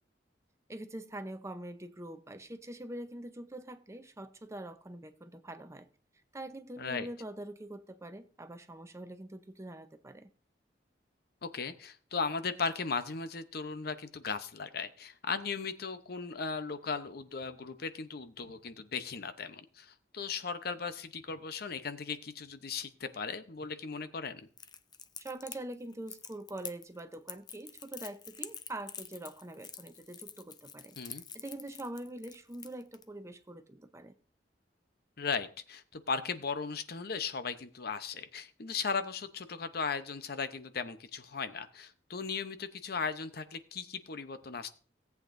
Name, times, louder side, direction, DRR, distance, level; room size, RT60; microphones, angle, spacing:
voice 1, 0.7-5.9 6.3-10.3 25.2-31.0 31.3-34.1, right 1 dB, 15° right, 0.7 m, -44 dB
voice 2, 6.8-7.1 11.4-24.5 31.0-31.2 35.2-44.7, left 5 dB, 60° left, 0.8 m, -37 dB
Crackle, 24.6-33.0, left 7 dB, 25° left, 0.5 m, -47 dB
17.5 x 8.2 x 2.6 m
head